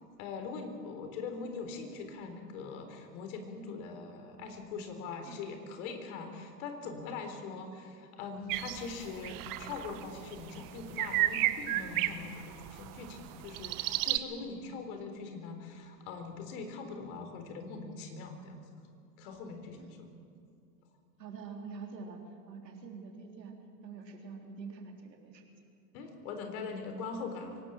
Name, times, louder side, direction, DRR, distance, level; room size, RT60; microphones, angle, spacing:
voice 1, 0.2-18.6 19.2-20.1 25.9-27.6, left 4 dB, 60° left, 6 dB, 4.0 m, -42 dB
sound 1, 8.5-14.2, right 15 dB, 40° right, 1.3 m, -34 dB
voice 2, 21.2-22.2 22.5-23.5 23.8-25.5, right 5 dB, 80° right, 2 dB, 3.7 m, -45 dB
24.0 x 18.5 x 7.4 m, 2.4 s
hypercardioid pair, 90°, 50 cm